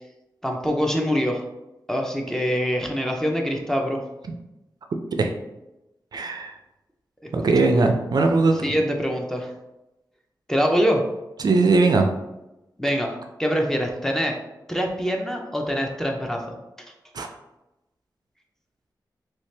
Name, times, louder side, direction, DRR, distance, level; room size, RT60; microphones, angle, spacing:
voice 1, 0.4-1.4 1.9-4.0 7.2-7.3 7.6-7.8 8.6-9.5 10.5-11.0 12.8-14.3 14.7-16.6, equal, 5° left, 1 dB, 0.5 m, -24 dB
voice 2, 6.1-6.6 7.3-8.6 11.4-12.1 17.1-17.3, right 3 dB, 60° right, 4 dB, 0.4 m, -19 dB
3.1 x 2.7 x 3.2 m, 0.96 s
wide cardioid pair, 90°, 8 cm